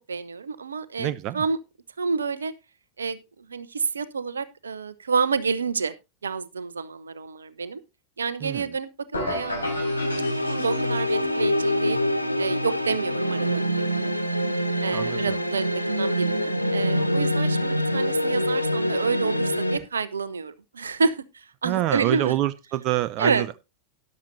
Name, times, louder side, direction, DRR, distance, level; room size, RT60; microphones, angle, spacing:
voice 1, 0.1-1.6 2.0-2.5 3.0-5.9 6.2-7.8 8.2-8.9 9.3-12.0 12.4-14.1 14.8-22.3 23.2-23.5, right 5 dB, 70° right, 0.8 m, -29 dB
voice 2, 1.0-1.4 8.4-8.7 14.9-15.4 21.6-23.6, right 14 dB, 40° right, 0.5 m, -26 dB
sound 1, 9.1-11.2, left 1 dB, 80° left, 4.4 m, -33 dB
sound 2, 9.5-19.8, equal, 90° right, 1.5 m, -25 dB
13.0 x 10.5 x 2.7 m
figure-of-eight pair, 90°, 0 cm